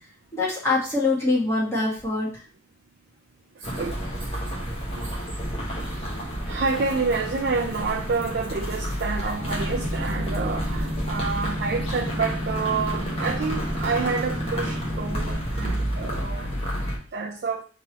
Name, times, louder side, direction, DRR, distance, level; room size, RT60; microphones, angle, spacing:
voice 1, 0.3-2.4, left 3 dB, 15° left, -7 dB, 1.6 m, -24 dB
sound 1, 3.6-17.0, equal, 30° left, 1.1 m, -30 dB
voice 2, 3.6-4.4 5.0-5.3 6.5-16.5 17.1-17.6, right 4 dB, 55° right, 2 dB, 0.4 m, -28 dB
Boat Water vehicle, 9.4-15.4, equal, 40° right, 1.1 m, -32 dB
3.8 x 3.0 x 4.2 m, 0.39 s
head